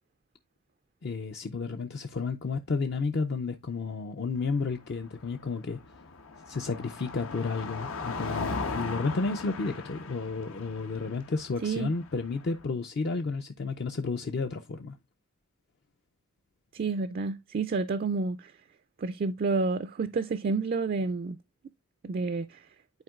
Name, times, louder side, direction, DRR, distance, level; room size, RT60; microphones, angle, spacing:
voice 1, 1.0-5.8 6.5-15.0, left 4 dB, 50° left, 0.5 m, -32 dB
Car passing by, 4.4-12.6, left 4 dB, 90° left, 1.0 m, -39 dB
voice 2, 11.6-11.9 16.7-18.5 19.0-21.4 22.0-22.6, right 4 dB, 45° right, 0.3 m, -29 dB
10.5 x 4.4 x 2.3 m
head